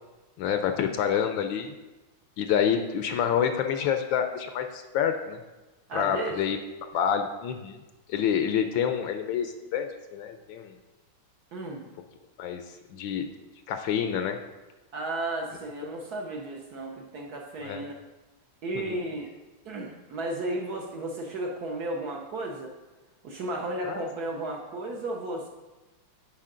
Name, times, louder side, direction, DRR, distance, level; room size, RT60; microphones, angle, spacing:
voice 1, 0.4-1.8 2.4-5.4 5.9-6.6 6.9-7.8 8.1-10.7 12.4-13.3 13.7-14.4 17.6-17.8 18.7-19.0 23.8-24.1, left 8 dB, 75° left, 7 dB, 1.2 m, -28 dB
voice 2, 5.9-6.3 11.5-11.9 14.9-18.0 18.6-19.3 19.6-22.7 23.2-25.5, right 2 dB, 60° right, 0 dB, 1.1 m, -34 dB
10.0 x 4.4 x 3.7 m, 1.1 s
omnidirectional pair, 2.3 m